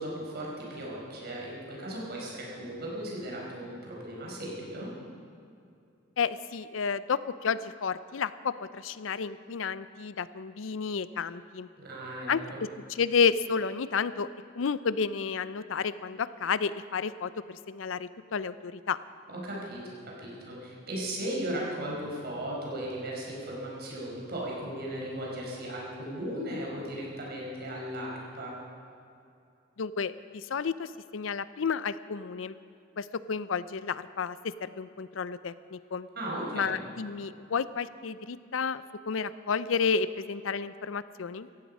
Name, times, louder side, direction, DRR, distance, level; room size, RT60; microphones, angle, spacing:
voice 1, 0.0-4.9 11.8-12.3 19.3-28.6 36.1-36.8, right 1 dB, 55° right, -3 dB, 4.9 m, -36 dB
voice 2, 6.2-11.7 12.3-12.4 12.9-14.3 14.6-19.0 29.8-32.5 33.0-36.1 36.5-41.5, left 5 dB, 80° left, 15 dB, 0.5 m, -31 dB
17.5 x 14.5 x 5.4 m, 2.5 s
head